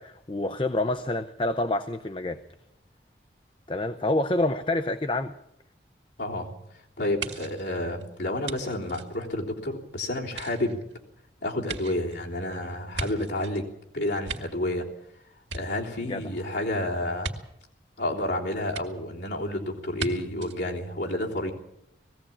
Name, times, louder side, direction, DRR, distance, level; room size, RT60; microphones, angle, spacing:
voice 1, 0.0-2.4 3.7-5.3 16.0-16.2, left 2 dB, 30° left, 9 dB, 0.7 m, -27 dB
voice 2, 6.2-6.5 7.0-10.8 11.4-13.6 13.9-14.8 15.5-17.3 18.0-21.5, left 1 dB, 75° left, -2 dB, 3.4 m, -30 dB
sound 1, 7.2-9.8 10.2-13.6 14.0-15.1 15.4-16.3 17.2-17.4 18.7-18.8 20.0-20.1 20.4-20.6, right 4 dB, 85° right, 2.1 m, -38 dB
20.0 x 15.5 x 8.7 m, 0.80 s
head